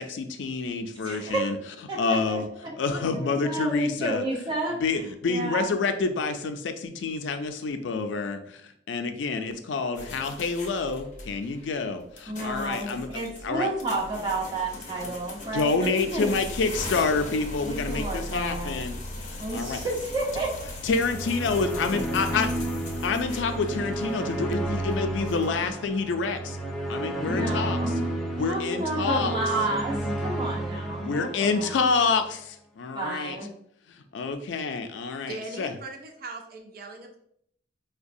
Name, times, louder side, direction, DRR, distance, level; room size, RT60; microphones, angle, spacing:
voice 1, 0.0-1.6 2.0-2.5 2.8-4.2 4.8-13.7 15.0-15.2 15.5-19.0 19.3-19.8 20.8-22.5 23.0-26.6 26.9-27.8 28.3-29.3 31.0-33.4 33.9-35.7, left 4 dB, 85° left, 7 dB, 0.4 m, -28 dB
voice 2, 1.0-1.5 1.9-2.4 2.9-4.8 5.3-5.8 12.3-16.3 17.6-18.8 19.4-20.5 27.2-28.0 28.5-31.8 32.9-33.5, right 2 dB, 25° right, -4 dB, 1.0 m, -31 dB
sound 1, 9.9-25.9, left 1 dB, 45° left, 0.6 m, -39 dB
sound 2, 20.9-32.2, right 1 dB, ahead, 0.7 m, -31 dB
voice 3, 35.3-37.2, right 3 dB, 55° right, 3 dB, 0.5 m, -39 dB
4.7 x 2.1 x 2.6 m, 0.70 s
head